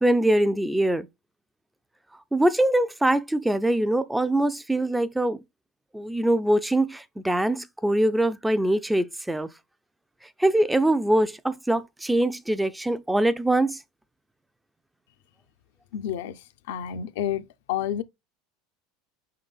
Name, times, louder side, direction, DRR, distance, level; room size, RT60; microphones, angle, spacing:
voice 1, 0.0-1.1 2.3-5.4 5.9-9.5 10.4-13.8, right 1 dB, 5° right, 0.3 m, -23 dB
voice 2, 15.9-18.0, left 10 dB, 85° left, 0.4 m, -30 dB
5.4 x 3.8 x 2.3 m
supercardioid pair, 130°, 0 cm